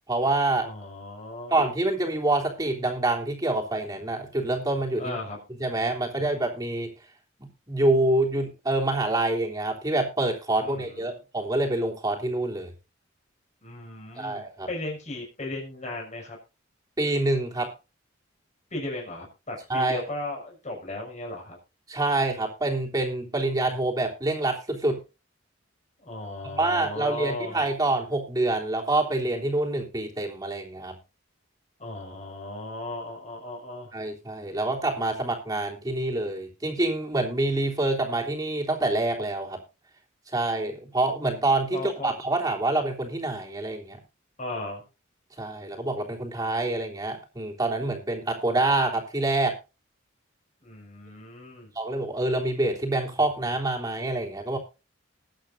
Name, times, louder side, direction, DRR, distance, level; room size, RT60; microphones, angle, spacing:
voice 1, 0.1-0.7 1.5-5.2 5.6-6.9 7.4-12.7 14.2-14.7 17.0-17.7 19.7-20.0 21.9-25.0 26.4-30.9 33.9-39.6 40.3-44.0 45.4-49.6 51.7-54.6, right 2 dB, 20° right, -1 dB, 3.3 m, -26 dB
voice 2, 0.6-1.5 5.0-5.4 6.2-6.3 10.6-11.2 13.6-16.4 18.7-21.6 26.0-27.6 31.8-33.9 41.7-42.1 44.4-44.8 50.6-51.7, left 2 dB, 35° left, 0 dB, 6.0 m, -36 dB
21.0 x 8.5 x 2.6 m, 0.29 s
head